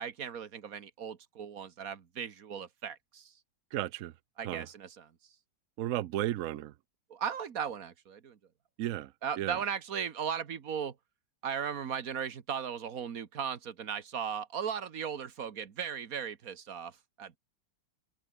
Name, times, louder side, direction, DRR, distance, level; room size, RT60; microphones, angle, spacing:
voice 1, 0.0-3.3 4.4-5.1 7.1-8.4 9.2-10.9 11.4-17.4, right 7 dB, 50° right, 1.7 m, -37 dB
voice 2, 3.7-4.1 4.4-4.7 5.8-6.7 8.8-9.6, right 13 dB, 75° right, 0.7 m, -34 dB
open air
omnidirectional pair, 2.1 m